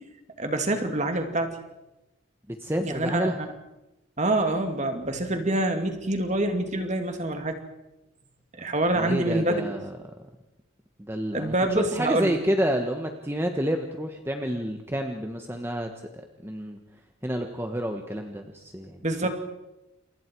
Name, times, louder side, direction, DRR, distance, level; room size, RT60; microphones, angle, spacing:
voice 1, 0.4-1.6 2.8-3.5 4.2-7.6 8.5-9.7 11.3-12.4 19.0-19.3, right 1 dB, 35° right, 6 dB, 2.7 m, -26 dB
voice 2, 2.6-3.4 8.9-9.9 11.0-15.9 16.4-16.8 17.2-19.3, equal, 10° right, 4 dB, 1.4 m, -29 dB
29.5 x 28.0 x 4.7 m, 0.96 s
head